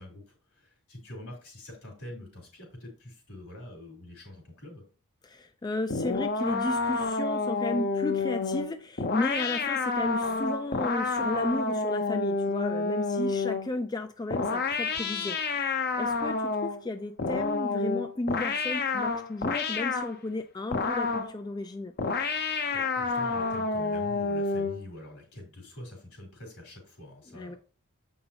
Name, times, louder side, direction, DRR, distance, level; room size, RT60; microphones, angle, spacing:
voice 1, 0.0-4.8 22.7-27.6, left 1 dB, 75° left, 0 dB, 3.7 m, -45 dB
voice 2, 5.2-21.9 27.3-27.6, left 2 dB, 20° left, 8 dB, 0.3 m, -34 dB
sound 1, 5.9-13.7 14.3-16.8 17.2-20.1 20.7-21.4 22.0-24.8, left 4 dB, 45° left, 0.7 m, -29 dB
7.7 x 5.5 x 2.8 m, 0.38 s
head